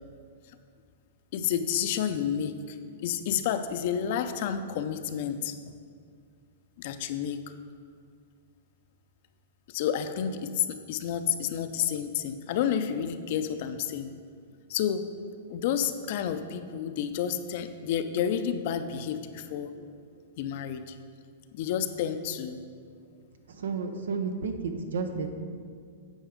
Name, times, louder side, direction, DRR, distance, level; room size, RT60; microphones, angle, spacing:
voice 1, 1.3-2.8 3.0-5.6 6.8-7.4 9.7-14.1 14.7-15.1 15.5-19.9 20.4-21.0 21.5-22.6, left 9 dB, 50° left, 10 dB, 0.5 m, -30 dB
voice 2, 23.5-25.3, right 5 dB, 85° right, 7 dB, 0.8 m, -32 dB
9.0 x 4.7 x 5.1 m, 2.2 s
hypercardioid pair, 145°, 0 cm